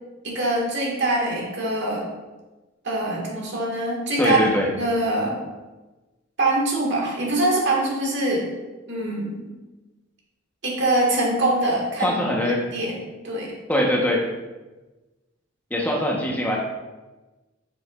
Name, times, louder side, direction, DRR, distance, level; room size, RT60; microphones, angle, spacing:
voice 1, 0.2-2.0 2.8-4.4 4.8-5.4 6.4-8.5 8.9-9.5 10.6-12.2 12.7-13.0 13.2-13.5, right 2 dB, 65° right, -3 dB, 1.9 m, -23 dB
voice 2, 4.2-4.7 12.0-12.6 13.7-14.3 15.7-16.6, left 1 dB, 10° left, -2 dB, 1.1 m, -22 dB
7.7 x 6.6 x 2.5 m, 1.2 s
head